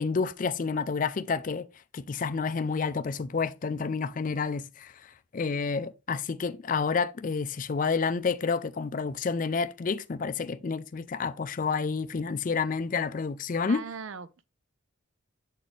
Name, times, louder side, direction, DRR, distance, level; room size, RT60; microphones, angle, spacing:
voice 1, 0.0-1.7 1.9-13.8, left 5 dB, 40° left, 0.4 m, -29 dB
voice 2, 13.7-14.4, right 5 dB, 70° right, 0.5 m, -39 dB
7.3 x 4.1 x 3.3 m
head